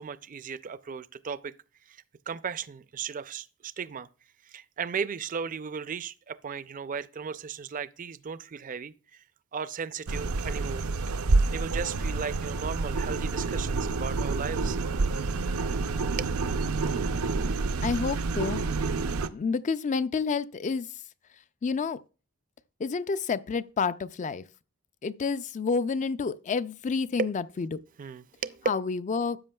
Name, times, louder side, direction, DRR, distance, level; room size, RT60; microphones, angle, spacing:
voice 1, 0.0-1.5 1.9-2.0 2.3-4.1 4.5-9.2 9.5-10.9 11.5-14.8 16.2-16.3 27.2-27.3 28.0-28.7, right 6 dB, 40° right, 0.4 m, -35 dB
sound 1, 10.1-19.3, right 3 dB, 90° right, 0.6 m, -28 dB
voice 2, 17.8-18.6 19.3-20.9 21.6-22.0 22.8-24.4 25.0-27.8 28.7-29.4, left 5 dB, 35° left, 0.3 m, -29 dB
12.5 x 8.2 x 2.3 m
head